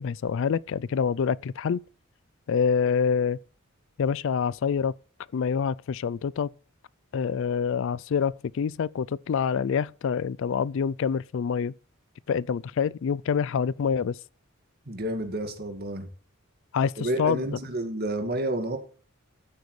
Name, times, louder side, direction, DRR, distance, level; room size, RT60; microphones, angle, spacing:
voice 1, 0.0-1.8 2.5-3.4 4.0-4.9 5.3-6.5 7.1-11.7 12.3-14.2 16.7-17.5, left 6 dB, 60° left, 0.3 m, -26 dB
voice 2, 14.9-16.1 17.0-18.8, right 1 dB, 45° right, 2.0 m, -30 dB
13.5 x 8.0 x 3.2 m
head